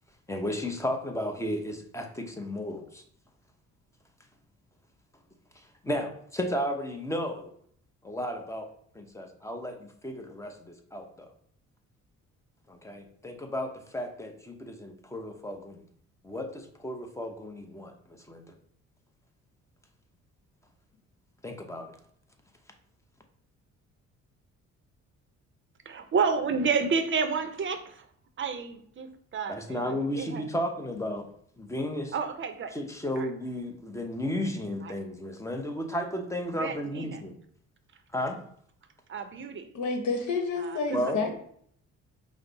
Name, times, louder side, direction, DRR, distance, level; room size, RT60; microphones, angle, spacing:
voice 1, 0.3-3.0 5.6-7.5 8.0-8.7 8.9-11.3 12.7-15.8 16.2-18.5 21.4-21.9 29.5-31.3 31.6-32.1 32.7-37.4 38.1-38.4 40.9-41.3, equal, 10° left, 4 dB, 0.7 m, -34 dB
voice 2, 25.9-28.0 28.4-30.4 32.1-32.7 33.2-33.3 34.8-34.9 36.5-37.2 39.1-39.7 40.6-41.1, right 5 dB, 40° right, 8 dB, 0.6 m, -30 dB
voice 3, 39.7-41.3, left 4 dB, 75° left, 4 dB, 1.0 m, -29 dB
5.2 x 2.0 x 3.9 m, 0.63 s
cardioid pair, 90°, 30 cm